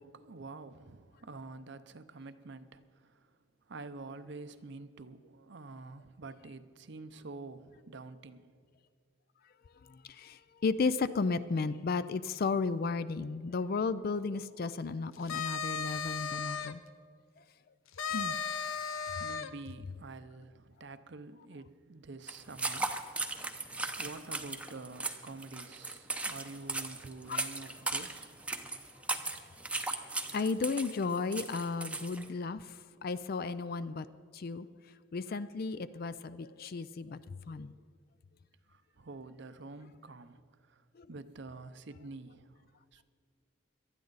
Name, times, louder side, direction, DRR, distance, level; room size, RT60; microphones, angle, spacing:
voice 1, 0.0-3.3 3.7-8.6 18.9-19.0 19.2-23.4 24.0-28.3 38.7-40.8 41.1-43.0, right 3 dB, 55° right, 0.7 m, -48 dB
voice 2, 9.8-16.8 18.1-18.4 27.3-27.5 29.3-29.4 29.9-34.1 34.3-34.7 35.1-37.2 37.5-37.7 41.0-41.1, left 4 dB, 45° left, 0.4 m, -34 dB
sound 1, 15.1-16.7 18.0-19.5, left 6 dB, 80° left, 0.7 m, -35 dB
sound 2, 22.3-32.3, right 3 dB, 5° right, 0.7 m, -37 dB
18.5 x 12.5 x 4.0 m
head